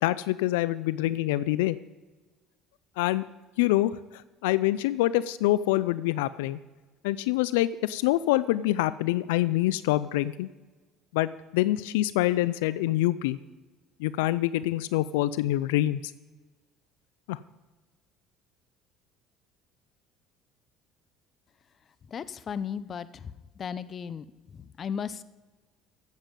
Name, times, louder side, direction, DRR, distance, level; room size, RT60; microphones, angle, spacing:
voice 1, 0.0-1.8 3.0-3.2 3.6-3.9 4.4-6.6 7.0-10.5 11.1-13.4 14.0-16.0 17.3-17.4, left 16 dB, 90° left, 17 dB, 0.3 m, -25 dB
voice 2, 22.1-23.3 23.6-24.3 24.5-25.2, left 7 dB, 40° left, 16 dB, 0.6 m, -35 dB
15.5 x 7.4 x 5.2 m, 1.3 s
supercardioid pair, 90°, 0 cm